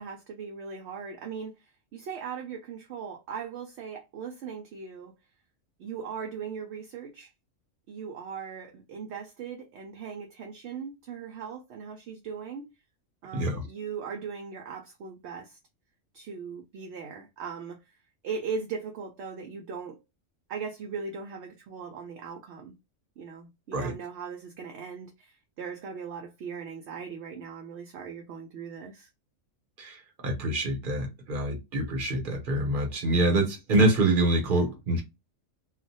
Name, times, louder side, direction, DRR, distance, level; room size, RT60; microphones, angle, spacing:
voice 1, 0.0-1.5 1.9-5.1 5.8-7.3 7.9-12.7 13.2-15.6 16.1-17.8 18.2-20.0 20.5-22.8 23.2-29.1, right 6 dB, 65° right, 0.8 m, -39 dB
voice 2, 13.3-13.7 23.7-23.9 29.8-35.0, right 2 dB, 45° right, 1.0 m, -26 dB
2.4 x 2.2 x 4.0 m
omnidirectional pair, 1.3 m